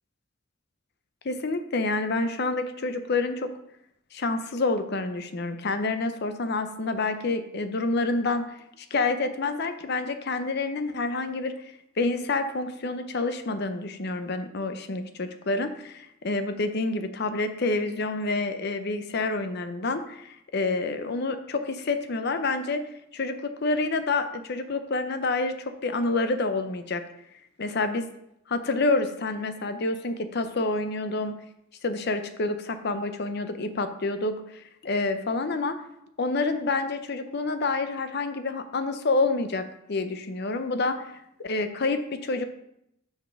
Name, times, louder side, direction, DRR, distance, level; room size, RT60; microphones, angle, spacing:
voice 1, 1.2-3.5 4.1-11.5 12.0-22.8 23.1-23.3 23.6-25.5 25.8-27.0 27.6-28.1 28.5-31.4 31.8-35.8 36.2-41.0 41.4-42.5, left 3 dB, 50° left, 9 dB, 0.6 m, -28 dB
6.2 x 5.2 x 4.7 m, 0.78 s
head